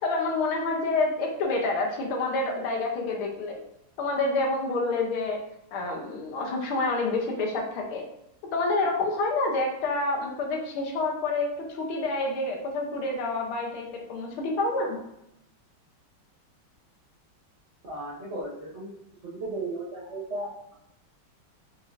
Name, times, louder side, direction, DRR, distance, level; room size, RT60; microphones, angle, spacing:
voice 1, 0.0-3.6 4.0-5.4 5.7-8.0 8.5-15.0, left 3 dB, 85° left, 0 dB, 1.7 m, -28 dB
voice 2, 17.8-18.9 19.2-20.7, right 2 dB, 55° right, -6 dB, 0.8 m, -35 dB
5.2 x 3.1 x 2.5 m, 0.83 s
omnidirectional pair, 2.3 m